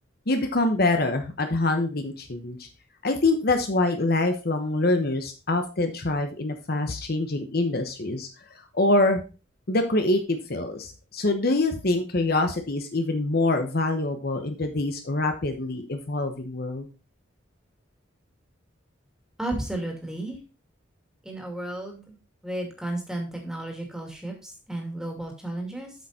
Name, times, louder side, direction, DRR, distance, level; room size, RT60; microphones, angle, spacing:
voice 1, 0.3-2.7 3.0-9.2 9.7-16.9, left 2 dB, 50° left, 6 dB, 1.0 m, -25 dB
voice 2, 19.4-20.4 21.2-22.2 22.4-25.9, right 1 dB, 5° right, 1 dB, 2.4 m, -33 dB
8.2 x 6.8 x 4.2 m, 0.32 s
head